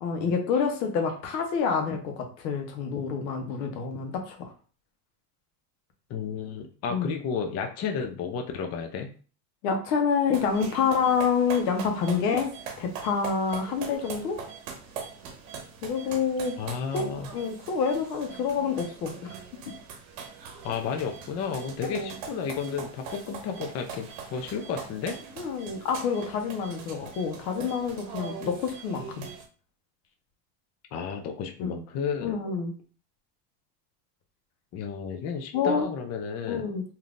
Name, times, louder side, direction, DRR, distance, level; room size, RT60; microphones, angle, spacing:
voice 1, 0.0-4.5 6.9-7.1 9.6-12.5 12.8-14.4 15.8-16.6 16.9-19.3 21.8-22.2 25.4-29.2 31.6-31.8 32.2-32.7 35.5-35.9 36.5-36.8, left 6 dB, 90° left, 4 dB, 1.0 m, -27 dB
voice 2, 6.1-9.1 16.6-17.3 20.6-25.2 30.9-32.4 34.7-36.7, left 6 dB, 35° left, 4 dB, 0.5 m, -32 dB
sound 1, 10.3-29.4, right 6 dB, 65° right, 0.9 m, -42 dB
3.4 x 2.8 x 2.4 m, 0.39 s
supercardioid pair, 115°, 48 cm